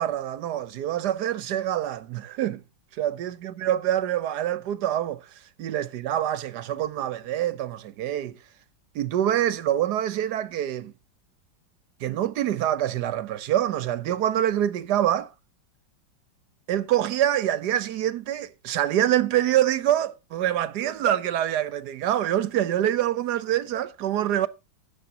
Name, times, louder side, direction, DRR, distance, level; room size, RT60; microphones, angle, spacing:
voice 1, 0.0-2.6 3.0-5.2 5.6-8.3 8.9-10.9 12.0-15.3 16.7-24.5, right 11 dB, 65° right, 1.2 m, -25 dB
13.0 x 10.0 x 2.8 m
omnidirectional pair, 2.1 m